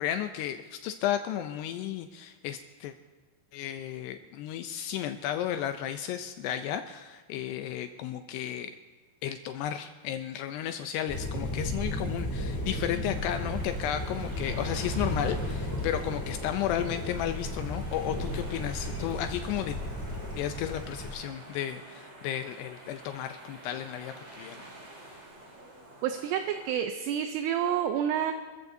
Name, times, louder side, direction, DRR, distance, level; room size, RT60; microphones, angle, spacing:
voice 1, 0.0-2.9 3.5-8.7 9.2-19.8 20.4-24.7, left 10 dB, 80° left, 8 dB, 2.4 m, -33 dB
Thunder, 11.1-21.1, left 1 dB, 10° left, 1.3 m, -34 dB
sound 1, 13.1-26.7, right 1 dB, 40° right, 1.7 m, -49 dB
voice 2, 26.0-28.3, right 9 dB, 80° right, 7 dB, 2.5 m, -29 dB
26.0 x 14.5 x 2.7 m, 1.4 s
omnidirectional pair, 5.1 m